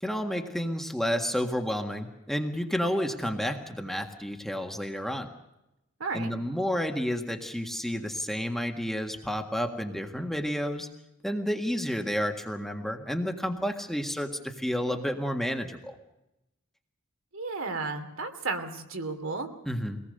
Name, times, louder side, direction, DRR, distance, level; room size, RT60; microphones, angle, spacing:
voice 1, 0.0-5.3 6.1-10.9 11.2-15.9 19.6-20.0, equal, ahead, 4 dB, 1.7 m, -30 dB
voice 2, 6.0-6.3 17.3-19.5, right 3 dB, 65° right, 6 dB, 2.7 m, -33 dB
24.0 x 19.0 x 6.7 m, 0.90 s
head